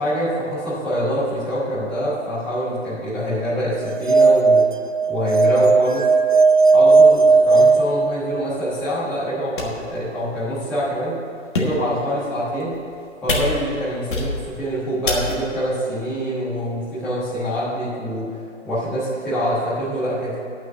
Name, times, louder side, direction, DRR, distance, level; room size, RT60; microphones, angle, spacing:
voice 1, 0.0-4.6 5.1-6.0 6.7-11.1 11.5-12.7 13.2-18.4 18.6-20.4, equal, 5° left, -14 dB, 1.3 m, -25 dB
sound 1, 3.8-8.6, right 4 dB, 40° right, 0.4 m, -15 dB
sound 2, 8.8-8.9 9.6-9.9 10.6-10.7 11.4-11.9 12.6-13.0 13.3-13.8 14.1-14.6 15.1-15.6, left 3 dB, 40° left, 1.5 m, -26 dB
9.5 x 6.0 x 8.1 m, 2.5 s
hypercardioid pair, 165°, 38 cm